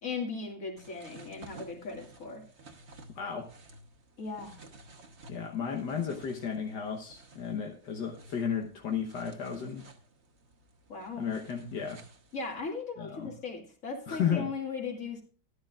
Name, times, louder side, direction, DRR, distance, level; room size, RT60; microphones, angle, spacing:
voice 1, 0.0-2.4 4.2-4.5 10.9-11.3 12.3-15.2, left 4 dB, 50° left, 1 dB, 2.6 m, -38 dB
sound 1, 0.8-12.6, right 2 dB, 40° right, 1.3 m, -54 dB
voice 2, 3.2-3.5 5.3-9.8 11.2-12.0 13.0-13.3 14.1-14.5, left 7 dB, 80° left, 1 dB, 1.8 m, -33 dB
13.5 x 12.0 x 2.4 m, 0.40 s
omnidirectional pair, 1.9 m